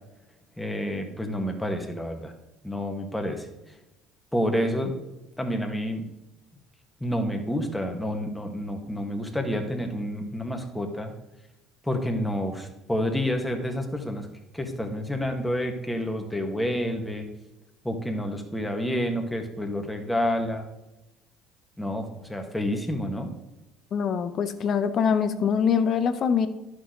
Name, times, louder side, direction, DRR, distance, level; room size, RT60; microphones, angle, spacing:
voice 1, 0.6-2.3 2.6-3.5 4.3-5.0 5.4-6.1 7.0-11.1 11.8-14.3 14.5-17.3 17.8-20.7 21.8-23.3, equal, 5° left, 3 dB, 1.8 m, -29 dB
voice 2, 23.9-26.5, left 7 dB, 50° left, 10 dB, 0.9 m, -24 dB
11.0 x 6.4 x 3.9 m, 0.97 s
hypercardioid pair, 65°, 0 cm